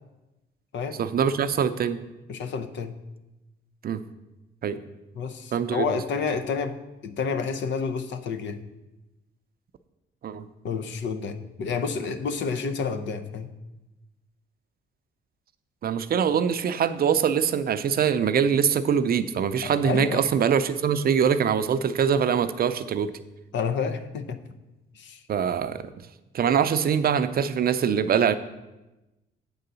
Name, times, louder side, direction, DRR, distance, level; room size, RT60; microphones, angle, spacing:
voice 1, 1.0-2.0 3.8-4.0 4.6-4.8 5.5-6.0 10.2-10.4 15.8-23.1 25.3-25.8 26.3-28.4, right 7 dB, 50° right, 12 dB, 0.5 m, -23 dB
voice 2, 2.3-2.9 5.1-8.6 10.6-13.5 19.6-20.3 23.5-24.4 24.9-25.2, left 5 dB, 65° left, 10 dB, 0.7 m, -29 dB
8.1 x 3.9 x 6.8 m, 1.0 s
cardioid pair, 90°, 20 cm